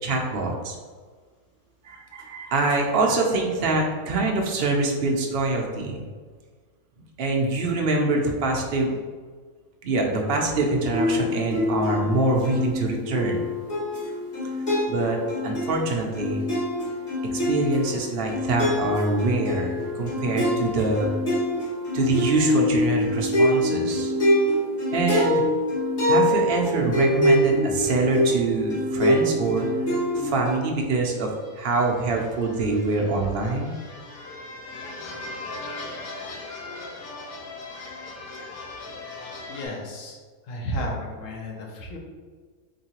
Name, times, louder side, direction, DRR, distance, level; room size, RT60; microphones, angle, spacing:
voice 1, 0.0-0.7 1.8-6.0 7.2-9.0 9.8-13.4 14.9-15.2 15.4-16.4 17.3-21.1 21.9-24.1 24.9-25.4 26.0-29.7 30.1-31.3 31.6-33.7, right 2 dB, 60° right, 0 dB, 0.6 m, -24 dB
sound 1, 10.9-30.6, left 1 dB, 40° left, 1.4 m, -25 dB
sound 2, 31.2-39.7, left 2 dB, 85° left, 1.1 m, -39 dB
voice 2, 39.5-40.2 40.4-42.0, equal, 65° left, 0 dB, 1.0 m, -32 dB
3.7 x 3.0 x 2.9 m, 1.5 s
omnidirectional pair, 1.5 m